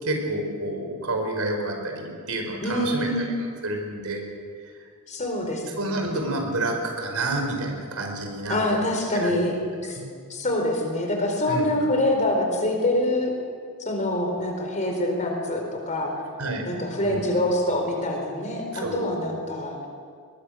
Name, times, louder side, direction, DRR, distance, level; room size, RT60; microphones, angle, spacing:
voice 1, 0.0-3.1 3.6-4.2 5.8-8.6 9.1-9.4 10.0-10.1 11.5-11.7 16.4-16.7 17.0-17.3 18.7-19.1, right 2 dB, 75° right, 3 dB, 4.7 m, -29 dB
voice 2, 2.6-3.3 5.1-6.4 8.5-9.6 9.8-10.0 10.3-13.3 13.8-16.1 16.6-19.8, left 1 dB, 35° left, 2 dB, 4.6 m, -25 dB
22.5 x 21.5 x 6.6 m, 2.1 s
head